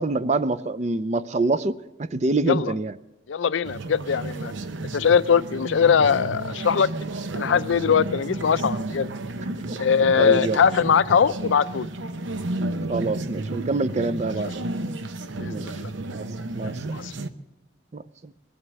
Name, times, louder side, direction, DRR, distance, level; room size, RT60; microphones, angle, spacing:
voice 1, 0.0-3.0 9.6-9.8 10.2-10.6 12.9-14.6 15.5-15.7 16.1-16.3 16.5-16.8 17.9-18.3, right 2 dB, 40° right, 14 dB, 0.5 m, -26 dB
voice 2, 3.3-4.5 4.9-6.9 7.4-9.1 9.8-11.9 15.4-15.9 16.6-17.1, left 6 dB, 90° left, 16 dB, 0.5 m, -21 dB
sound 1, 3.6-17.3, right 2 dB, 85° right, 0.8 m, -32 dB
21.0 x 8.0 x 7.5 m, 1.1 s
head